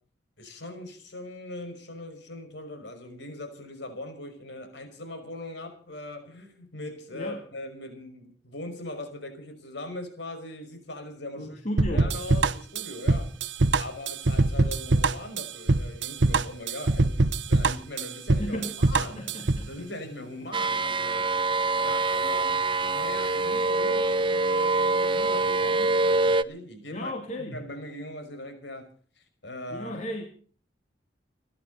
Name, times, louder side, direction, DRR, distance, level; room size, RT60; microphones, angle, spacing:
voice 1, 0.4-13.5 13.8-19.2 19.7-21.3 21.7-22.5 22.9-27.1 27.4-28.9 29.2-30.0, left 1 dB, 70° left, 8 dB, 5.6 m, -40 dB
voice 2, 11.4-12.1 18.4-18.8 19.2-19.9 26.9-27.7 29.7-30.2, equal, 40° left, 3 dB, 2.6 m, -34 dB
sound 1, 11.8-19.7, right 3 dB, 80° right, 1.0 m, -23 dB
sound 2, 20.5-26.4, right 3 dB, 25° right, 0.7 m, -25 dB
30.0 x 11.0 x 4.1 m, 0.43 s
head